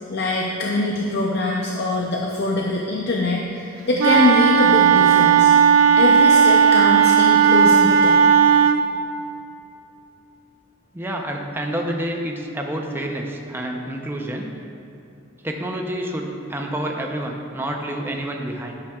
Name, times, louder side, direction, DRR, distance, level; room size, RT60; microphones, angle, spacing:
voice 1, 0.1-5.5 6.0-8.2, left 2 dB, 55° left, -2 dB, 0.6 m, -23 dB
Wind instrument woodwind instrument, 4.0-8.8, right 7 dB, 80° right, 0.4 m, -14 dB
voice 2, 10.9-14.5 15.4-18.7, right 1 dB, 10° right, 1 dB, 0.6 m, -28 dB
11.5 x 6.8 x 2.4 m, 2.8 s
head